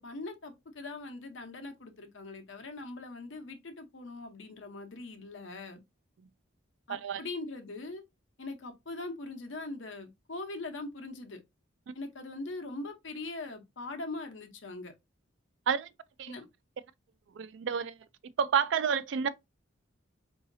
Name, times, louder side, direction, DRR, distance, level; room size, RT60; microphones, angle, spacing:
voice 1, 0.0-5.8 6.9-8.0 8.4-11.4 11.9-14.9 16.3-16.5, left 2 dB, 70° left, 0.8 m, -41 dB
voice 2, 6.9-7.2 15.7-15.9 16.2-16.3 17.4-17.9 18.4-19.3, right 7 dB, 65° right, 0.3 m, -29 dB
3.8 x 2.7 x 2.6 m
head